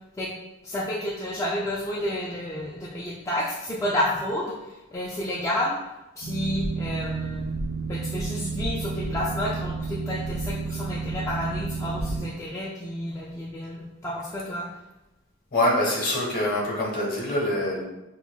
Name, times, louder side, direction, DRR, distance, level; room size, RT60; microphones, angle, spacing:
voice 1, 0.6-5.8 6.2-7.6 7.9-14.7, left 1 dB, 15° left, -6 dB, 0.3 m, -30 dB
Boat Water vehicle, 6.2-12.2, right 4 dB, 80° right, 1.1 m, -31 dB
voice 2, 15.5-17.8, left 1 dB, 45° left, -4 dB, 1.1 m, -25 dB
5.4 x 2.2 x 2.3 m, 1.0 s
head